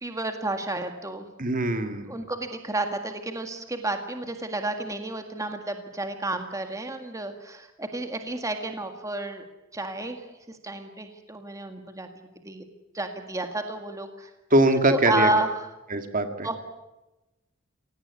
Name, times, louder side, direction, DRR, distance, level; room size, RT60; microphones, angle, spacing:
voice 1, 0.0-1.3 2.1-9.5 9.7-12.7 12.9-14.3 14.9-15.6 16.4-16.6, right 2 dB, 15° right, 5 dB, 1.8 m, -31 dB
voice 2, 1.4-2.1 14.5-15.3 15.9-16.5, right 1 dB, 40° right, 7 dB, 2.1 m, -22 dB
26.5 x 18.0 x 8.3 m, 1.0 s
head